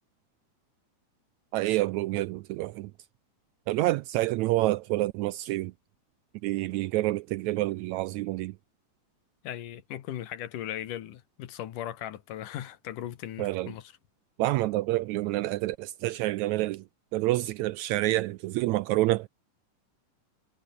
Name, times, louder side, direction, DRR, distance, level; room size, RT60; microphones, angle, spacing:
voice 1, 1.5-2.9 3.7-5.7 6.4-8.5 13.4-13.7 14.4-16.8 17.1-19.3, right 18 dB, 80° right, 1.7 m, -28 dB
voice 2, 9.4-13.9, left 12 dB, 85° left, 3.0 m, -38 dB
omnidirectional pair, 3.7 m